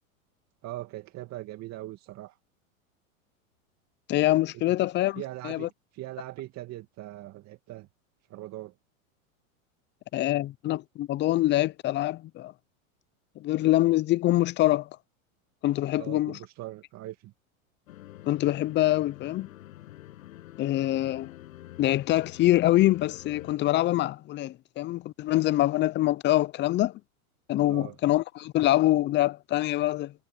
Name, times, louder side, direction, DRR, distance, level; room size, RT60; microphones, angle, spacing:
voice 1, 0.6-2.4 4.5-4.6 5.2-7.9 8.3-8.7 16.0-17.3 27.7-28.0, right 16 dB, 40° right, 2.4 m, -41 dB
voice 2, 4.1-5.7 10.1-12.5 13.4-14.9 15.6-16.4 18.3-19.5 20.6-21.3 21.8-26.9 27.5-30.1, left 15 dB, 25° left, 0.6 m, -25 dB
sound 1, 17.9-23.5, left 14 dB, 70° left, 7.4 m, -47 dB
hypercardioid pair, 115°, 42 cm